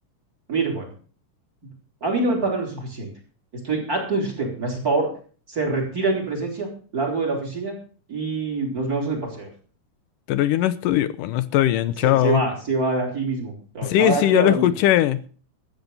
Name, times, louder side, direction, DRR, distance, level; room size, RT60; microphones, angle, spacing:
voice 1, 0.5-0.9 2.0-3.1 3.5-5.1 5.5-6.7 6.9-7.8 8.1-9.5 12.0-14.7, right 3 dB, 25° right, 4.3 m, -25 dB
voice 2, 10.3-12.4 13.8-15.2, left 13 dB, 85° left, 2.3 m, -20 dB
13.5 x 8.4 x 6.7 m
omnidirectional pair, 3.7 m